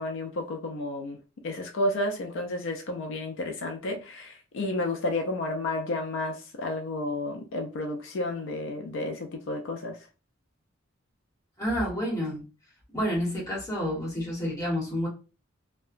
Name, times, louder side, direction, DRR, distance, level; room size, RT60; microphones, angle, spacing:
voice 1, 0.0-10.1, left 2 dB, 65° left, 0.4 m, -31 dB
voice 2, 11.6-12.4 12.9-15.1, equal, 15° left, 1.0 m, -29 dB
2.8 x 2.2 x 2.4 m
head